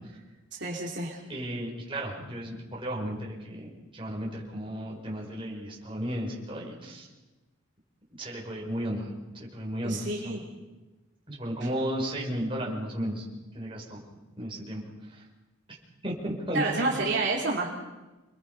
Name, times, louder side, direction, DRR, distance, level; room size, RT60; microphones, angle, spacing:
voice 1, 0.6-1.2 9.8-10.4 16.5-17.7, right 3 dB, 55° right, -3 dB, 3.3 m, -29 dB
voice 2, 1.3-7.1 8.2-10.4 11.3-13.2 13.5-14.0 14.4-14.8 15.1-15.2 16.0-16.8, equal, 25° right, -2 dB, 5.9 m, -34 dB
28.5 x 22.0 x 5.6 m, 1.1 s
head